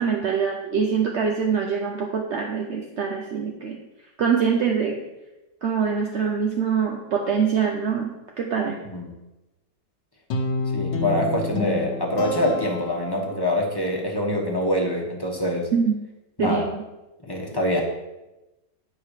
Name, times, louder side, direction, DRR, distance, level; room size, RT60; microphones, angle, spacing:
voice 1, 0.0-3.8 4.2-5.0 5.6-8.8 15.7-15.9 16.4-16.8, right 6 dB, 60° right, 1 dB, 0.8 m, -24 dB
Guitar, 10.3-13.6, left 3 dB, 75° left, 1.8 m, -29 dB
voice 2, 10.7-15.7 16.4-16.7 17.2-17.8, left 1 dB, 15° left, -2 dB, 1.1 m, -25 dB
9.5 x 5.2 x 4.9 m, 1.0 s
omnidirectional pair, 1.9 m